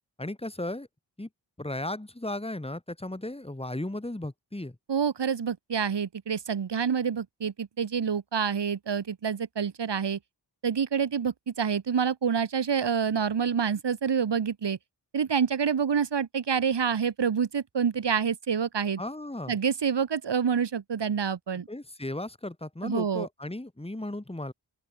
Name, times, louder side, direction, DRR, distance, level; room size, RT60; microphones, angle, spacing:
voice 1, 0.2-0.9 1.2-1.3 1.6-4.7 19.0-19.6 21.7-24.5, left 1 dB, 15° left, 3.5 m, -35 dB
voice 2, 4.9-10.2 10.6-14.8 15.1-19.0 19.5-21.7 22.8-23.3, right 7 dB, 75° right, 2.1 m, -27 dB
open air
cardioid pair, 50°, 42 cm